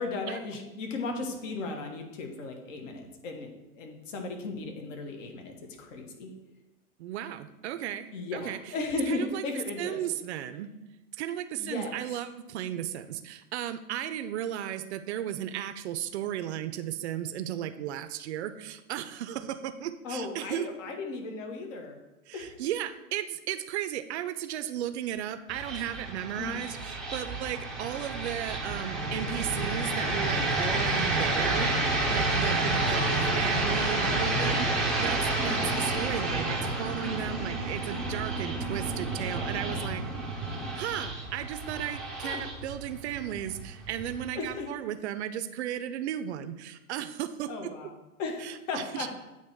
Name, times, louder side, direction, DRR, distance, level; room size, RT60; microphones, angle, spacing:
voice 1, 0.0-6.3 8.1-10.0 11.6-12.0 20.0-22.0 22.3-22.6 26.4-26.7 32.6-33.0 35.4-35.8 42.2-42.4 44.3-44.7 47.5-49.1, left 3 dB, 55° left, 3 dB, 1.3 m, -36 dB
voice 2, 7.0-8.7 9.1-9.4 9.8-10.7 11.2-20.7 22.3-40.0 40.7-47.5 48.4-49.1, right 11 dB, 50° right, 11 dB, 0.5 m, -35 dB
sound 1, 25.5-44.5, right 2 dB, ahead, 0.5 m, -30 dB
8.7 x 3.0 x 4.4 m, 0.98 s
hypercardioid pair, 120°, 45 cm